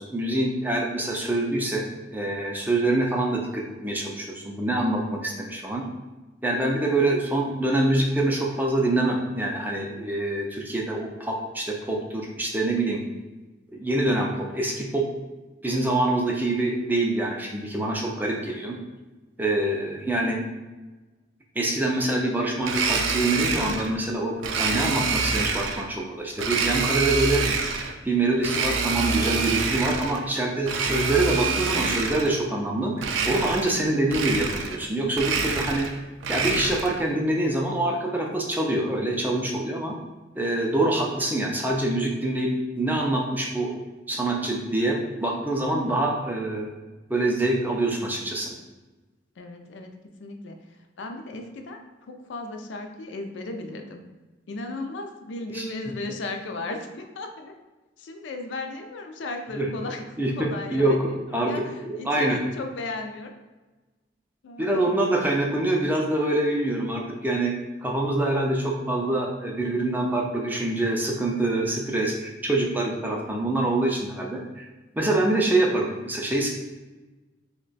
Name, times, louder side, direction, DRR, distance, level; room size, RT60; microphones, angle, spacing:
voice 1, 0.0-5.8 6.4-13.0 13.7-15.1 15.6-18.8 19.4-20.4 21.6-27.4 28.0-35.9 36.3-39.9 40.4-42.5 42.8-43.7 44.1-46.7 47.1-48.5 55.5-55.7 59.5-59.7 60.2-61.0 61.3-61.5 61.8-62.4 64.6-67.5 67.8-74.7 75.0-76.5, right 2 dB, 10° right, 0 dB, 0.3 m, -25 dB
Domestic sounds home sounds, 22.6-23.9 24.4-25.9 26.4-28.0 28.4-30.2 30.6-32.4 33.0-33.8 34.1-34.9 35.1-37.0, right 4 dB, 80° right, 0.4 m, -26 dB
voice 2, 49.4-49.9 50.2-54.0 54.5-57.5 58.0-60.0 60.4-63.3 64.4-65.0, left 2 dB, 70° left, 4 dB, 0.4 m, -36 dB
2.9 x 2.2 x 3.9 m, 1.2 s
head